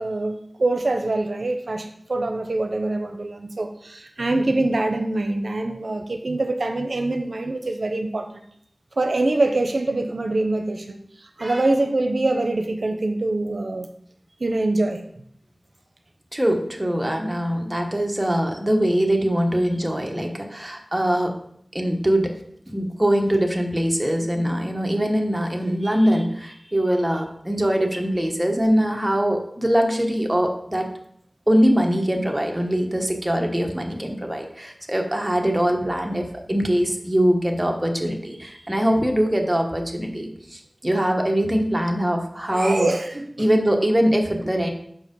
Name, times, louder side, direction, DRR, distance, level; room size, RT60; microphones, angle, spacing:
voice 1, 0.0-8.4 9.0-13.9 14.4-15.0 42.5-43.5, right 2 dB, 80° right, 6 dB, 0.6 m, -24 dB
voice 2, 16.3-21.4 21.7-22.3 22.7-30.9 31.5-42.9 43.4-44.7, equal, 20° right, 2 dB, 1.2 m, -22 dB
6.2 x 4.8 x 5.4 m, 0.69 s
wide cardioid pair, 55°, 0 cm